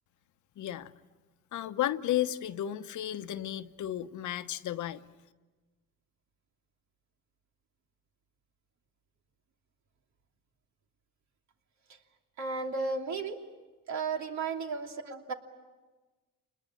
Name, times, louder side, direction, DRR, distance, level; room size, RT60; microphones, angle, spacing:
voice 1, 0.6-0.9 1.5-5.0, left 12 dB, 75° left, 11 dB, 1.0 m, -33 dB
voice 2, 12.4-13.4 13.9-15.3, right 4 dB, 65° right, 3 dB, 3.0 m, -34 dB
28.5 x 21.0 x 8.7 m, 1.3 s
cardioid pair, 90°, 30 cm